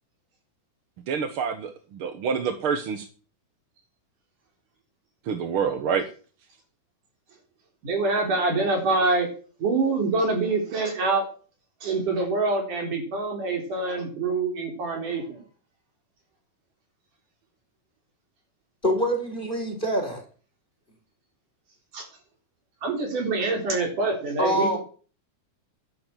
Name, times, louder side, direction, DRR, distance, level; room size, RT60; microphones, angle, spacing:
voice 1, 1.1-3.0 5.3-6.0, right 6 dB, 55° right, 7 dB, 1.7 m, -27 dB
voice 2, 7.8-9.3 9.6-11.2 11.8-15.4 21.9-22.1 22.8-24.8, right 3 dB, 70° right, 2 dB, 5.7 m, -25 dB
voice 3, 18.8-20.2 24.4-24.8, equal, 15° left, 3 dB, 4.3 m, -25 dB
11.5 x 11.0 x 7.5 m, 0.40 s
omnidirectional pair, 3.7 m